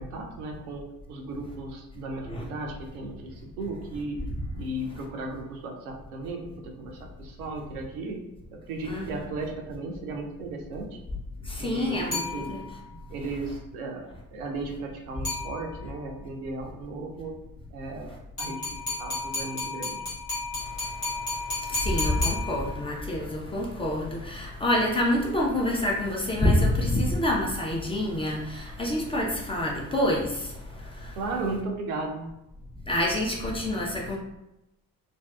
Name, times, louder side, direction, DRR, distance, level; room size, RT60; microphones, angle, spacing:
voice 1, 0.0-4.2 4.6-8.2 8.5-11.0 11.6-12.6 13.1-17.3 17.7-20.0 31.2-32.3, right 2 dB, 75° right, 2 dB, 0.5 m, -36 dB
voice 2, 8.8-9.2 11.5-12.6 21.7-30.3 32.9-34.2, left 1 dB, 15° left, -3 dB, 0.5 m, -27 dB
sound 1, 12.1-12.9 15.2-16.0 18.4-23.0, left 3 dB, 85° left, 0.9 m, -33 dB
2.5 x 2.2 x 2.2 m, 0.90 s
figure-of-eight pair, 45°, 44 cm